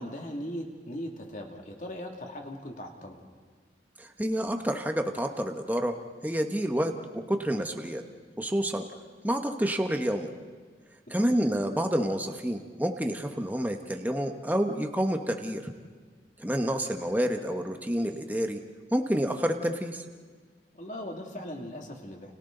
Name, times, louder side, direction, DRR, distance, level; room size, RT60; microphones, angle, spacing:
voice 1, 0.0-3.2 11.2-11.3 20.7-22.3, equal, 45° left, 2 dB, 2.6 m, -39 dB
voice 2, 4.0-5.9 6.2-8.0 8.4-8.8 9.2-10.3 11.1-15.7 16.4-18.6 18.9-20.0, equal, 10° right, 4 dB, 1.2 m, -28 dB
30.0 x 30.0 x 4.0 m, 1.5 s
head